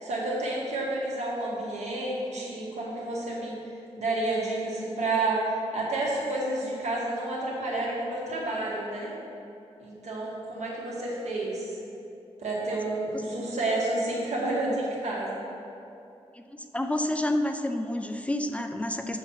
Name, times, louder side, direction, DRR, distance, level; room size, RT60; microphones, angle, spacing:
voice 1, 0.0-3.6 4.0-5.4 5.7-9.1 9.8-11.7 12.4-15.4, right 2 dB, 90° right, -4 dB, 2.0 m, -30 dB
voice 2, 16.3-19.2, left 1 dB, 10° left, 6 dB, 0.4 m, -29 dB
7.4 x 6.1 x 5.7 m, 2.7 s
wide cardioid pair, 160°, 11 cm